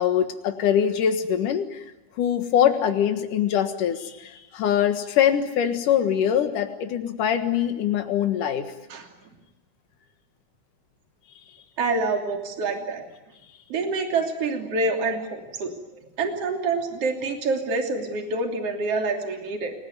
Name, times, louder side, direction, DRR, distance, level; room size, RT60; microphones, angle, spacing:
voice 1, 0.0-1.8 2.2-8.7, left 9 dB, 85° left, 6 dB, 3.2 m, -23 dB
voice 2, 11.8-13.1 13.7-19.7, right 3 dB, 50° right, 3 dB, 4.0 m, -27 dB
29.5 x 19.5 x 9.6 m, 1.0 s
omnidirectional pair, 3.6 m